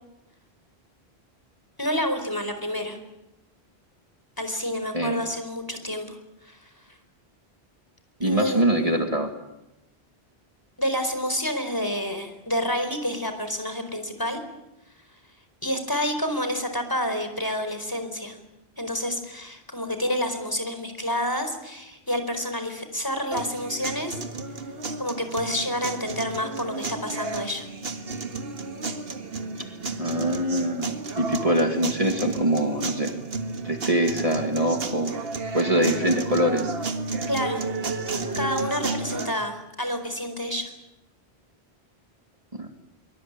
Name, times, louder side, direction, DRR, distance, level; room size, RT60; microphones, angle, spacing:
voice 1, 1.8-3.0 4.4-6.2 6.4-6.6 8.2-9.0 10.8-14.4 15.6-18.4 18.8-24.2 25.0-27.7 37.3-37.6 38.3-40.7, equal, 20° left, 8 dB, 4.6 m, -29 dB
voice 2, 8.2-9.3 30.0-33.1 33.6-35.1 35.5-36.7 42.6-42.7, right 1 dB, 35° right, 4 dB, 2.2 m, -23 dB
sound 1, 23.3-39.3, right 3 dB, 65° right, 2.0 m, -32 dB
24.0 x 24.0 x 8.9 m, 0.92 s
omnidirectional pair, 1.1 m